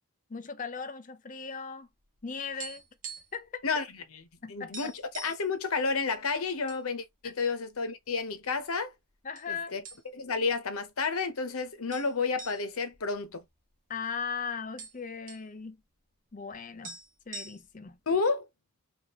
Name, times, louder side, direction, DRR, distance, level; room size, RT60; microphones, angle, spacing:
voice 1, 0.3-1.9 2.2-2.8 3.3-3.6 4.4-4.9 7.2-7.3 9.2-9.8 13.9-15.8 16.3-17.0 17.3-18.0, left 5 dB, 35° left, 0.6 m, -38 dB
sound 1, 2.0-3.5 3.7-3.9 4.3-4.4 4.7-5.5 6.1-6.8 7.2-7.3 8.0-8.7 9.3-9.5 9.8-10.4 10.7-10.8 11.9-14.0 14.3-14.4 14.6-15.5 16.5-16.6 16.8-17.9, right 4 dB, 40° right, 1.3 m, -44 dB
voice 2, 4.5-8.9 9.5-9.8 10.1-13.4 18.1-18.4, left 4 dB, 80° left, 0.9 m, -31 dB
4.9 x 2.5 x 2.9 m
head